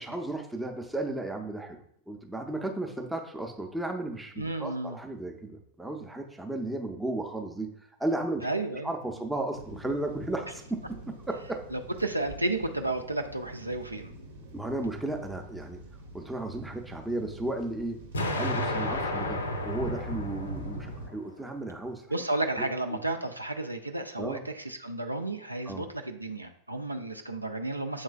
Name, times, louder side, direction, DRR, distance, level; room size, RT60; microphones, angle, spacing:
voice 1, 0.0-1.8 2.1-8.5 8.8-11.0 11.3-11.6 14.5-15.8 16.1-18.1 18.4-22.1 22.9-23.0 24.2-24.4 25.7-25.8, right 2 dB, 5° right, 3 dB, 0.5 m, -34 dB
voice 2, 4.4-5.0 8.4-8.9 11.7-14.1 22.1-28.0, right 2 dB, 85° right, 6 dB, 0.3 m, -32 dB
sound 1, 9.5-21.1, right 1 dB, 65° right, 0.9 m, -43 dB
Explosion, 18.1-21.1, left 1 dB, 70° left, 0.5 m, -32 dB
7.3 x 3.1 x 2.2 m, 0.67 s
figure-of-eight pair, 90°, 0 cm